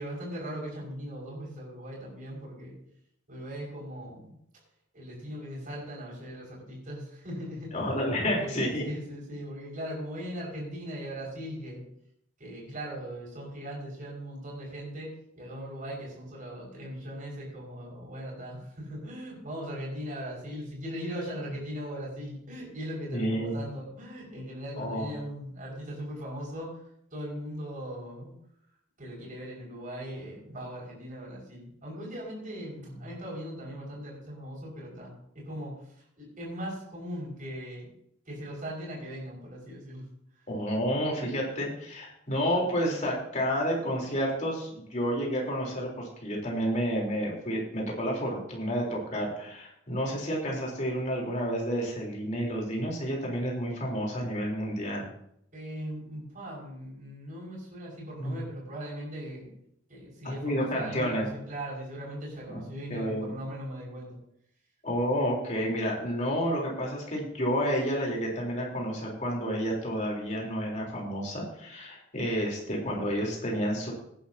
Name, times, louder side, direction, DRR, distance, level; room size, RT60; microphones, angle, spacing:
voice 1, 0.0-2.8 3.3-4.3 4.9-11.8 12.4-26.8 27.1-28.3 29.0-37.9 38.3-40.1 40.4-40.5 55.5-59.5 59.9-64.2, equal, 40° right, -3 dB, 5.7 m, -39 dB
voice 2, 7.7-8.8 23.1-23.5 24.8-25.1 40.5-55.0 58.2-58.4 60.4-61.2 62.5-62.6 62.9-63.3 64.8-73.9, equal, 35° left, -2 dB, 3.7 m, -30 dB
17.5 x 10.0 x 2.8 m, 0.72 s
head